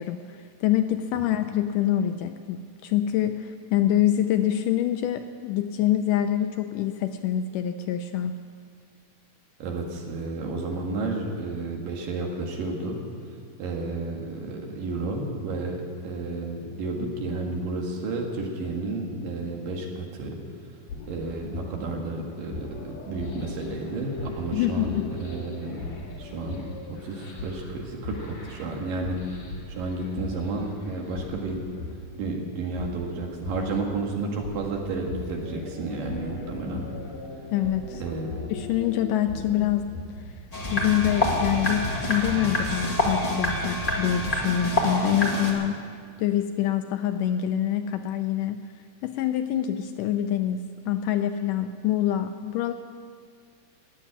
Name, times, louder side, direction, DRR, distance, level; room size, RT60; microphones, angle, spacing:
voice 1, 0.0-8.3 24.5-25.1 37.5-38.0 38.5-39.9 40.7-45.8 46.2-48.6 49.0-50.6 50.9-52.7, left 11 dB, 80° left, 8 dB, 1.9 m, -25 dB
voice 2, 9.6-13.0 13.6-20.4 21.1-25.8 26.2-29.4 29.7-31.6 32.2-36.8 38.0-38.3, right 3 dB, 70° right, 1 dB, 3.4 m, -31 dB
sound 1, 20.9-40.5, left 2 dB, 65° left, 3.9 m, -39 dB
sound 2, 40.5-45.5, left 1 dB, 20° left, 1.0 m, -26 dB
16.5 x 7.6 x 9.9 m, 2.1 s
omnidirectional pair, 4.1 m